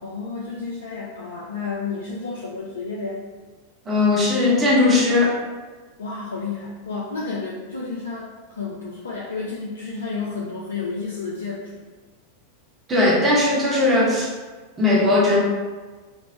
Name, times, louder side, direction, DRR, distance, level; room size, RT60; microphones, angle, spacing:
voice 1, 0.0-3.3 6.0-11.8, left 4 dB, 70° left, -4 dB, 0.3 m, -31 dB
voice 2, 3.9-5.4 12.9-14.3 14.8-15.4, left 2 dB, 20° right, -5 dB, 0.8 m, -18 dB
2.9 x 2.0 x 3.3 m, 1.3 s
figure-of-eight pair, 90°, 0 cm